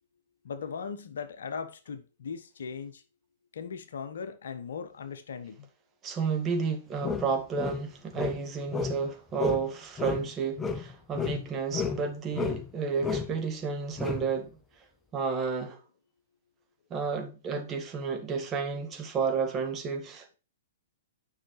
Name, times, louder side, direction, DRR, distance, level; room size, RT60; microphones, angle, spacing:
voice 1, 0.4-3.0 3.5-5.7, left 6 dB, 60° left, 1.0 m, -38 dB
voice 2, 6.0-14.6 15.1-15.8 16.9-20.3, right 5 dB, 20° right, 1.7 m, -31 dB
sound 1, 7.0-9.1 9.4-9.7 10.0-12.1 12.3-12.7 13.0-13.4 14.0-14.3, left 5 dB, 10° left, 0.9 m, -32 dB
10.0 x 5.8 x 3.2 m
figure-of-eight pair, 110°, 0 cm